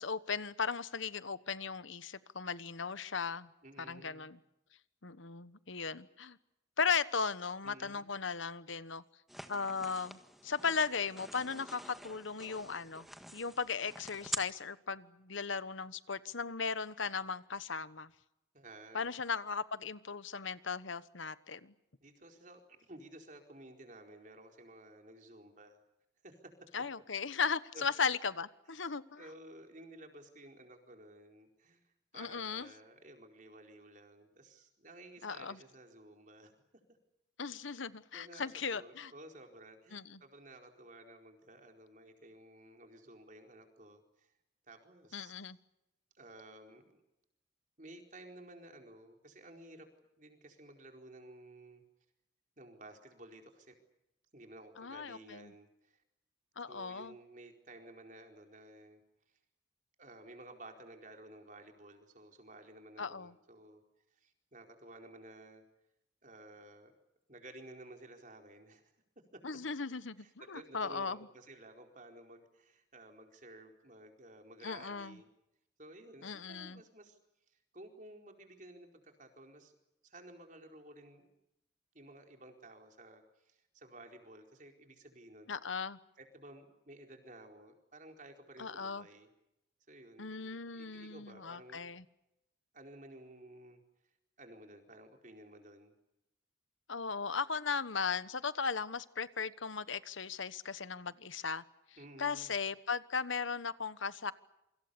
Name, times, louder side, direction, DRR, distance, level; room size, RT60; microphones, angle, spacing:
voice 1, 0.0-3.5 3.8-4.4 5.0-6.4 6.8-9.0 9.5-13.1 13.3-18.1 18.9-21.7 26.7-29.2 32.2-32.7 35.2-35.6 37.4-39.1 39.9-40.2 45.1-45.6 54.8-55.5 56.6-57.1 63.0-63.3 69.4-71.2 74.6-75.2 76.2-76.8 85.5-86.0 88.6-89.0 90.2-92.0 96.9-101.6 102.2-104.3, left 5 dB, 80° left, 1.2 m, -37 dB
voice 2, 3.6-4.3 7.6-8.0 18.5-19.1 22.0-25.8 26.2-26.7 27.7-27.9 28.7-28.9 29.2-36.5 37.7-37.8 38.1-44.3 44.7-45.3 46.1-47.0 47.8-49.9 50.2-51.8 52.6-53.8 54.3-56.0 56.7-59.0 60.0-63.8 64.1-65.6 66.2-66.9 67.3-68.9 69.3-69.4 70.2-75.3 75.8-77.2 77.5-79.7 80.0-81.3 81.9-85.5 86.2-89.3 89.9-91.9 92.7-93.8 94.4-95.9 102.0-102.5, right 1 dB, 40° right, 4.4 m, -54 dB
sound 1, 9.3-14.4, right 1 dB, ahead, 1.5 m, -46 dB
27.5 x 25.0 x 6.9 m
head